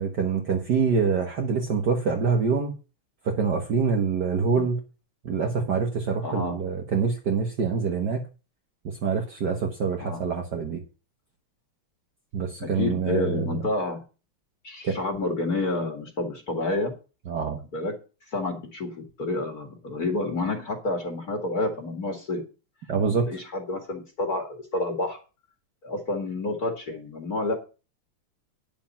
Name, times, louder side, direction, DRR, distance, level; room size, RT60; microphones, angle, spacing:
voice 1, 0.0-2.7 3.2-4.8 5.2-8.2 8.8-10.8 12.3-13.5 14.8-14.9 17.3-17.6 22.9-23.3, right 5 dB, 55° right, 2 dB, 1.8 m, -25 dB
voice 2, 6.2-6.6 10.0-10.2 12.6-14.0 14.6-16.9 17.7-18.0 18.3-22.4 23.3-25.2 25.8-27.5, left 2 dB, 45° left, 4 dB, 2.3 m, -29 dB
9.9 x 7.3 x 5.8 m, 0.32 s
omnidirectional pair, 2.4 m